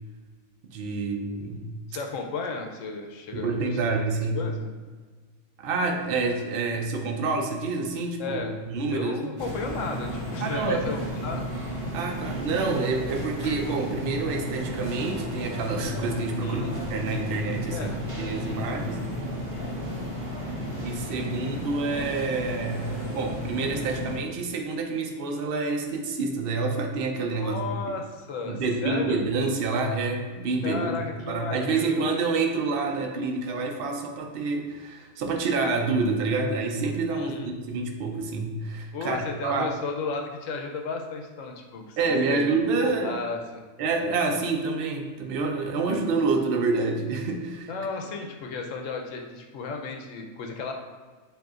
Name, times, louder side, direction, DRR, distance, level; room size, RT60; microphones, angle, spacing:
voice 1, 0.7-1.7 3.3-4.4 5.6-8.4 8.7-9.3 10.4-10.9 11.9-17.9 18.2-19.0 20.8-22.9 23.1-27.6 28.5-31.0 31.3-39.7 42.0-43.2 43.8-47.7, right 3 dB, 55° right, 2 dB, 0.7 m, -28 dB
voice 2, 1.9-3.8 4.3-4.7 8.2-8.6 8.9-11.5 16.4-16.8 17.7-18.0 18.4-18.7 21.9-22.3 27.3-29.2 30.6-32.2 37.1-37.5 38.9-42.0 42.3-42.4 42.8-43.4 47.7-50.7, left 4 dB, 75° left, 3 dB, 0.9 m, -34 dB
sound 1, 9.4-24.2, equal, 25° right, 0.8 m, -33 dB
7.5 x 2.7 x 2.4 m, 1.4 s
omnidirectional pair, 1.4 m